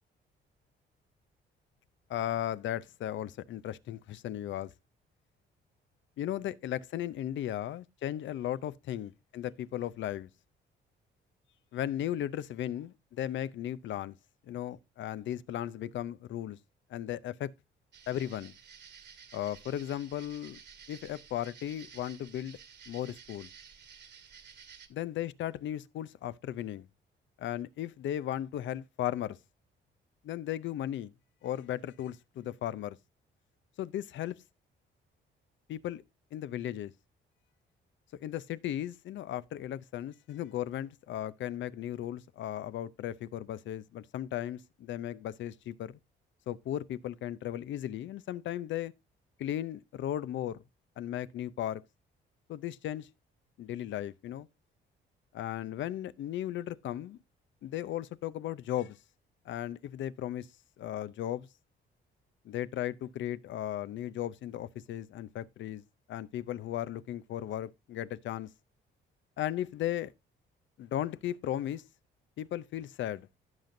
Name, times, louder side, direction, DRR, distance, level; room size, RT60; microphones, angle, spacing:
voice 1, 2.1-4.7 6.2-10.3 11.7-14.2 14.5-16.6 16.9-17.5 18.1-18.5 19.3-20.6 20.9-22.6 22.9-23.5 24.9-26.9 27.4-29.4 30.2-31.1 31.4-33.0 33.8-34.4 35.7-36.0 36.3-36.9 38.2-46.0 46.5-48.9 49.4-50.6 51.0-51.8 52.5-53.1 53.6-54.5 55.3-57.2 57.6-59.0 59.5-60.5 60.8-61.5 62.4-65.8 66.1-68.5 69.4-70.1 70.8-71.8 72.4-73.3, left 12 dB, 70° left, 0.6 m, -36 dB
sound 1, 17.9-24.9, right 7 dB, 60° right, 1.7 m, -53 dB
15.5 x 5.9 x 2.6 m
cardioid pair, 90°, 20 cm